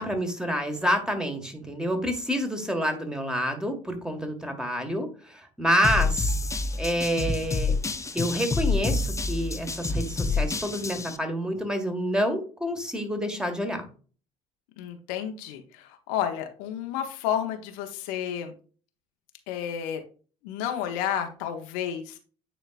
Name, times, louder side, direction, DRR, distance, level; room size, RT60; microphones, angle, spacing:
voice 1, 0.0-6.3 6.8-7.7 8.1-13.8, equal, 5° right, 4 dB, 1.8 m, -28 dB
sound 1, 5.8-11.2, left 3 dB, 15° left, 0.7 m, -28 dB
voice 2, 14.8-18.5 19.5-20.0 20.4-22.2, left 9 dB, 70° left, 6 dB, 1.0 m, -31 dB
9.2 x 4.4 x 2.5 m, 0.38 s
hypercardioid pair, 60°, 17 cm